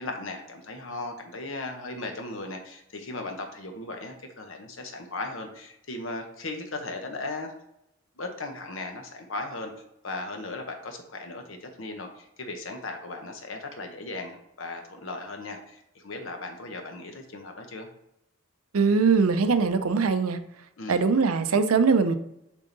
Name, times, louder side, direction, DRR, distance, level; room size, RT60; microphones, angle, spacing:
voice 1, 0.0-7.5 8.2-9.7 10.0-17.9 20.8-21.0, left 2 dB, 65° left, 1.0 m, -37 dB
voice 2, 18.7-20.4 20.9-22.1, right 5 dB, 85° right, 0.6 m, -21 dB
7.2 x 3.8 x 4.0 m
head